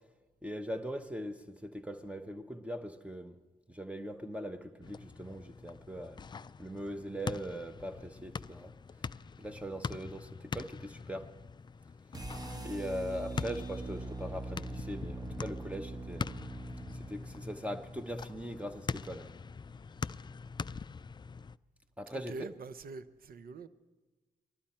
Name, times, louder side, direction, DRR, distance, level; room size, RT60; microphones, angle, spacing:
voice 1, 0.4-3.4 3.7-6.2 6.6-8.7 9.4-11.3 12.6-16.3 16.9-19.3 22.0-22.5, equal, 10° right, 1.0 m, -40 dB
sound 1, 4.8-21.6, left 5 dB, 30° left, 0.4 m, -43 dB
sound 2, 12.1-18.3, right 2 dB, 25° right, 1.4 m, -42 dB
voice 2, 22.1-23.7, right 4 dB, 65° right, 0.8 m, -44 dB
20.0 x 12.5 x 4.4 m
supercardioid pair, 50°, 16 cm